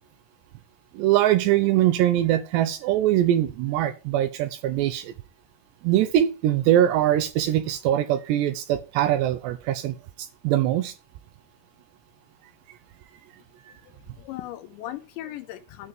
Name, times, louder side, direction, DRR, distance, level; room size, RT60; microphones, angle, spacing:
voice 1, 0.9-5.1 5.8-10.9, right 12 dB, 80° right, 2.6 m, -22 dB
voice 2, 13.7-15.9, left 13 dB, 75° left, 3.1 m, -38 dB
9.7 x 5.3 x 7.8 m
omnidirectional pair, 5.7 m